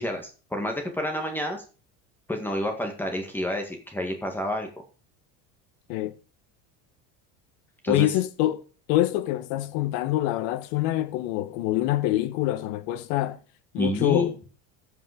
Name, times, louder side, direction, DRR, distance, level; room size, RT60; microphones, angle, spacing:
voice 1, 0.0-1.6 2.3-4.7 7.8-8.1 13.8-14.3, left 1 dB, 5° left, 1.8 m, -29 dB
voice 2, 7.9-8.6 8.9-13.4 13.7-14.3, left 15 dB, 70° left, 1.3 m, -25 dB
14.5 x 5.5 x 5.1 m
cardioid pair, 150°, 36 cm